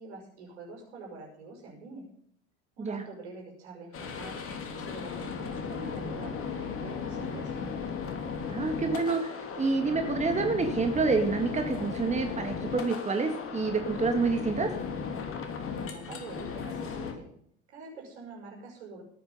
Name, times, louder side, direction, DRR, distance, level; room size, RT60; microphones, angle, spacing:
voice 1, 0.0-2.1 2.8-7.7 15.8-17.3 17.7-19.0, right 3 dB, 75° right, 0 dB, 6.1 m, -45 dB
sound 1, 3.9-17.1, left 6 dB, 40° left, 2.9 m, -36 dB
voice 2, 8.5-14.7, right 4 dB, 20° right, 5 dB, 2.2 m, -28 dB
18.0 x 9.5 x 5.5 m, 0.65 s
figure-of-eight pair, 70°, 34 cm